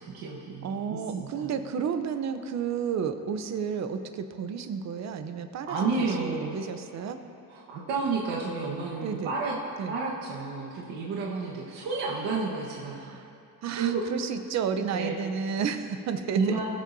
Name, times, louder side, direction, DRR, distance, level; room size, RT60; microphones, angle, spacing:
voice 1, 0.0-1.5 5.7-6.6 7.5-9.5 9.9-13.0 13.8-14.0 14.9-15.2 16.3-16.7, right 4 dB, 85° right, -5 dB, 1.4 m, -31 dB
voice 2, 0.6-7.2 9.0-9.3 9.8-9.9 13.0-13.3 13.6-16.6, right 6 dB, 45° right, 8 dB, 0.7 m, -32 dB
20.5 x 7.5 x 2.7 m, 2.7 s
cardioid pair, 145°, 37 cm